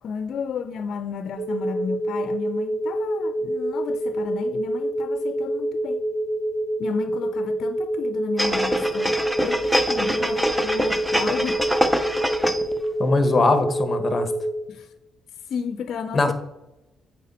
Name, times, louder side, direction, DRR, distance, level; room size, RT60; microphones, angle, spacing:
voice 1, 0.0-6.0 6.8-11.6 14.7-14.9 15.5-16.3, left 6 dB, 65° left, 0.5 m, -32 dB
sound 1, 1.4-14.5, right 1 dB, 55° right, 0.7 m, -27 dB
sound 2, 8.4-12.8 13.2-13.3, equal, 5° right, 0.6 m, -24 dB
voice 2, 13.0-14.3 16.1-16.3, left 3 dB, 30° left, 1.1 m, -21 dB
8.3 x 4.5 x 4.2 m
cardioid pair, 90°, 0 cm